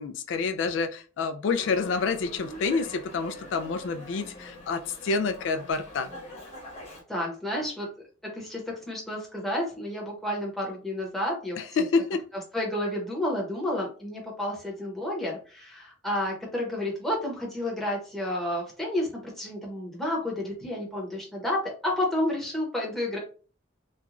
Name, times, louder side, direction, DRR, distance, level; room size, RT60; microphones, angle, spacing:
voice 1, 0.0-6.1 11.6-12.2, left 4 dB, 75° left, 8 dB, 0.3 m, -28 dB
Dog, 1.5-7.0, left 1 dB, 35° left, 1.0 m, -44 dB
voice 2, 7.1-7.9 8.2-11.6 12.5-23.2, left 1 dB, ahead, -4 dB, 0.9 m, -30 dB
3.0 x 2.3 x 2.4 m, 0.38 s
head